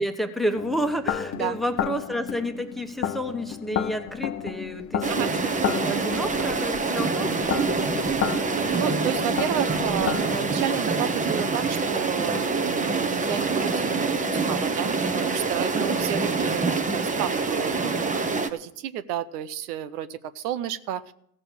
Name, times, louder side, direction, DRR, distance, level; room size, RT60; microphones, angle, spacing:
voice 1, 0.0-5.3 5.6-7.9, equal, ahead, 6 dB, 1.2 m, -30 dB
sound 1, 0.5-10.7, left 10 dB, 30° left, 0.8 m, -32 dB
sound 2, 5.0-18.5, right 4 dB, 15° right, 1.1 m, -25 dB
voice 2, 8.6-21.1, right 10 dB, 85° right, 13 dB, 0.9 m, -32 dB
15.5 x 6.7 x 7.3 m, 0.71 s
supercardioid pair, 100°, 46 cm